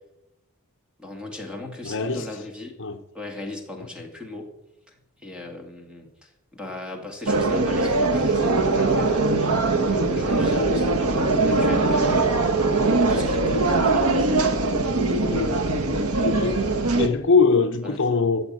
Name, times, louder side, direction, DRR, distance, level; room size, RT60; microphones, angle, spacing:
voice 1, 1.0-2.7 3.1-4.5 4.9-5.0 5.2-9.2 9.7-12.3 13.1-14.6 17.8-18.0, left 2 dB, 5° right, 2.2 m, -38 dB
voice 2, 1.8-2.3 2.8-3.0 15.3-15.6 16.2-16.6 17.0-18.4, left 4 dB, 55° left, 0.8 m, -22 dB
sound 1, 7.3-17.1, right 3 dB, 80° right, 1.4 m, -21 dB
14.0 x 7.1 x 8.7 m
head